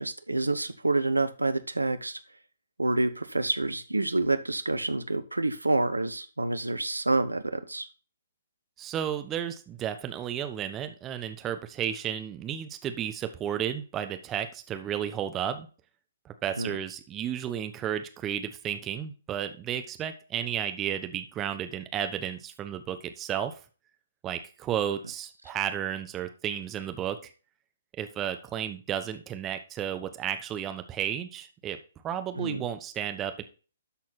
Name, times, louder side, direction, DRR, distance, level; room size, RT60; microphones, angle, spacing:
voice 1, 0.0-2.2 2.8-7.9 16.6-16.7 32.4-32.7, right 2 dB, 85° right, 12 dB, 0.9 m, -28 dB
voice 2, 8.8-15.7 16.2-23.6 24.2-27.3 28.0-31.8 32.0-33.4, right 9 dB, 20° right, 8 dB, 1.0 m, -33 dB
12.5 x 4.2 x 4.1 m, 0.35 s
figure-of-eight pair, 130°, 0 cm